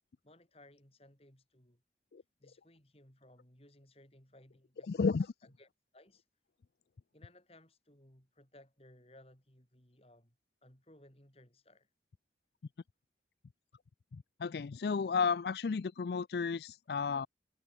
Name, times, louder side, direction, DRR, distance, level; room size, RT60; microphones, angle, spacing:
voice 1, 0.2-1.8 2.4-5.1 5.4-6.2 7.1-10.4 10.6-11.9, left 1 dB, 35° left, 6.1 m, -61 dB
voice 2, 4.9-5.3 14.4-17.3, left 5 dB, 65° left, 0.4 m, -32 dB
head